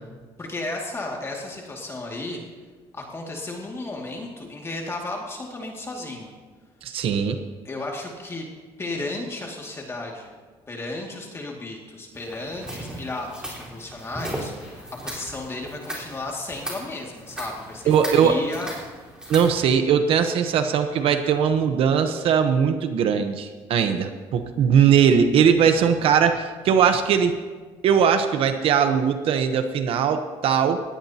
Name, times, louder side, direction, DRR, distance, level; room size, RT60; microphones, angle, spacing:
voice 1, 0.4-2.4 2.9-6.3 7.6-8.4 8.8-10.3 10.7-18.7, left 2 dB, 25° left, -1 dB, 2.3 m, -34 dB
voice 2, 6.8-7.4 17.9-18.4 19.3-27.4 27.8-30.8, right 7 dB, 60° right, 7 dB, 1.0 m, -20 dB
sound 1, 12.1-19.7, right 1 dB, 5° right, 4.3 m, -37 dB
20.0 x 17.5 x 2.9 m, 1.4 s
cardioid pair, 125°, 10 cm